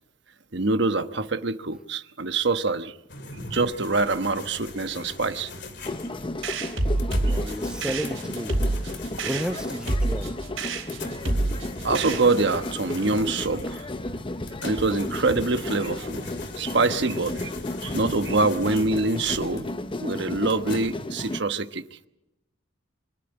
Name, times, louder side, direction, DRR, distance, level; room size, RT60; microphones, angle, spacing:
voice 1, 0.5-2.9 3.5-5.5 7.3-7.4 11.8-13.8 14.6-16.3 16.6-17.5 17.8-19.7 20.0-21.8, right 3 dB, 60° right, 1.2 m, -25 dB
sound 1, 3.1-20.9, left 3 dB, 60° left, 3.0 m, -41 dB
sound 2, 5.8-21.4, left 2 dB, 25° left, 0.8 m, -34 dB
sound 3, 6.4-12.6, right 2 dB, 85° right, 3.9 m, -28 dB
voice 2, 7.2-8.5 9.2-10.3, equal, 5° right, 0.7 m, -32 dB
25.5 x 12.5 x 9.9 m
head